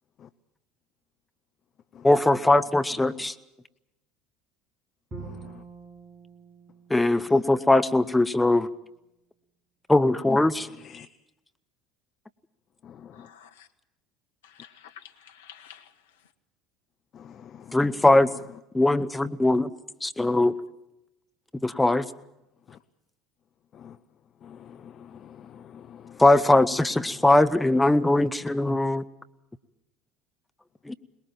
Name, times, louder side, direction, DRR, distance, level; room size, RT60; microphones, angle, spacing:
voice 1, 2.0-3.3 6.9-8.7 9.9-10.7 17.7-18.3 18.7-19.7 20.0-20.6 21.6-22.1 26.2-29.0 30.9-31.0, left 2 dB, 10° left, 11 dB, 0.9 m, -20 dB
Bowed string instrument, 5.1-8.2, right 4 dB, 35° right, 6.8 m, -45 dB
voice 2, 5.2-5.5 7.2-7.3 10.8-11.1 12.8-13.3 17.1-17.8 22.7-22.8 23.7-24.0 24.4-26.2, left 8 dB, 40° left, 13 dB, 0.7 m, -47 dB
voice 3, 13.1-13.7 14.4-15.9, left 9 dB, 70° left, 9 dB, 1.4 m, -49 dB
22.5 x 20.5 x 7.3 m, 0.90 s
figure-of-eight pair, 65°, 0 cm